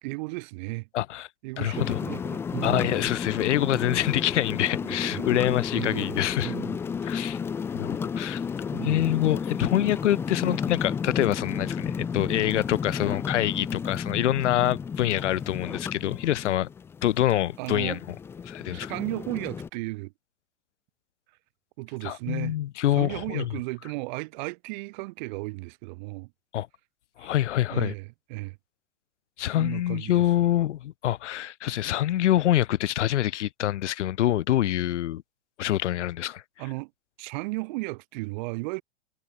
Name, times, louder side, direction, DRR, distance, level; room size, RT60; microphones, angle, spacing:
voice 1, 0.0-0.9 1.4-3.0 3.7-4.0 4.8-5.4 5.7-6.8 8.7-9.1 17.6-18.0 18.7-20.1 21.8-22.5 22.9-26.3 27.2-27.3 27.7-28.6 29.5-30.3 36.6-36.9 37.2-38.8, right 25 dB, 40° right, 7.8 m, -35 dB
voice 2, 0.9-1.3 1.6-2.0 2.6-6.5 7.0-7.4 7.7-8.4 8.8-16.7 17.0-18.2 18.4-18.9 22.0-23.5 26.5-26.7 27.2-27.9 29.4-35.2 35.6-36.4, left 13 dB, 90° left, 1.1 m, -26 dB
sound 1, 1.7-19.7, left 6 dB, 5° left, 0.6 m, -32 dB
supercardioid pair, 165°, 34 cm